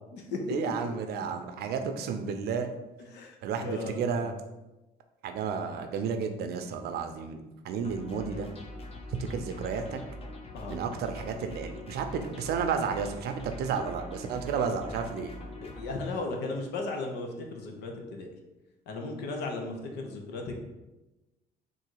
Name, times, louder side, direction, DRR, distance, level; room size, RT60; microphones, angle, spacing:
voice 1, 0.5-2.7 3.4-4.3 5.2-8.5 9.3-10.0 10.7-15.3, right 6 dB, 70° right, 6 dB, 0.6 m, -32 dB
voice 2, 3.0-4.3 10.5-10.8 15.6-18.3 18.9-20.6, left 3 dB, 80° left, 2 dB, 0.9 m, -36 dB
sound 1, 7.8-15.9, left 1 dB, 35° left, 0.8 m, -43 dB
3.9 x 2.6 x 4.6 m, 1.0 s
cardioid pair, 110°, 17 cm